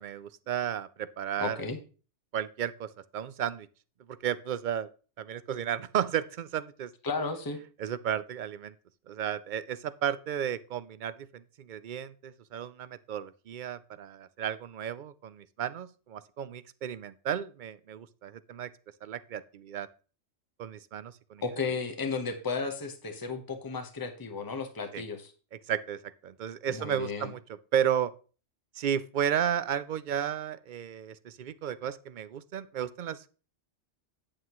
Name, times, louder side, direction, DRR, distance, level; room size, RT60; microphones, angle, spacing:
voice 1, 0.0-1.6 2.3-3.7 4.1-4.9 5.2-6.9 7.8-8.7 9.1-18.7 19.0-19.9 20.6-21.4 24.9-25.0 25.5-27.4 27.7-28.1 28.8-33.3, right 9 dB, 55° right, 0.6 m, -33 dB
voice 2, 1.4-1.8 7.0-7.6 21.4-25.3 26.7-27.3, left 4 dB, 20° left, 1.0 m, -34 dB
9.4 x 8.7 x 3.0 m
omnidirectional pair, 1.2 m